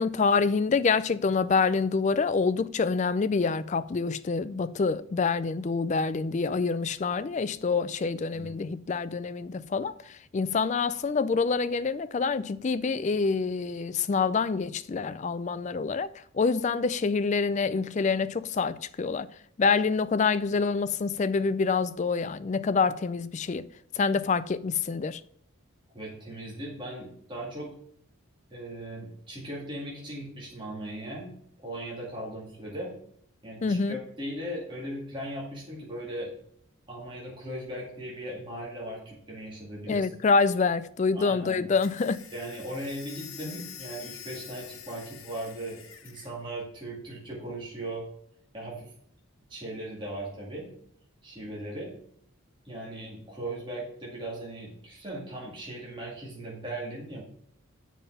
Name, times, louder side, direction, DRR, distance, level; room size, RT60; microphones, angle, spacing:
voice 1, 0.0-9.9 10.3-19.3 19.6-23.7 23.9-25.2 33.6-34.0 39.9-42.2, left 4 dB, 35° left, 0.3 m, -26 dB
voice 2, 25.9-27.8 28.5-33.0 33.4-36.3 36.9-40.0 41.1-41.7 42.3-48.1 48.5-48.9 49.5-50.7 51.2-51.9 52.6-57.2, right 1 dB, 20° right, 2.2 m, -38 dB
sound 1, 41.7-46.3, left 10 dB, 70° left, 1.0 m, -46 dB
7.2 x 5.6 x 5.6 m
head